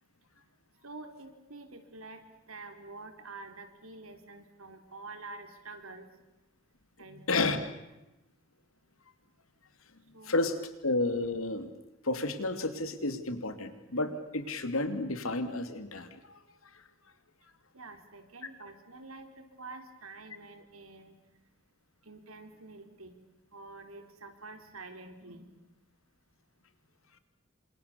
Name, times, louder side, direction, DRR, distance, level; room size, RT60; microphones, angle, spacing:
voice 1, 0.8-6.1 7.0-7.6 10.1-10.4 17.7-21.2 22.0-23.2 23.5-25.5, right 3 dB, 85° right, 6 dB, 4.0 m, -47 dB
voice 2, 7.3-7.6 10.2-10.6 10.8-11.7 12.0-16.4, left 2 dB, 75° left, 9 dB, 2.8 m, -31 dB
28.5 x 26.5 x 7.0 m, 0.99 s
head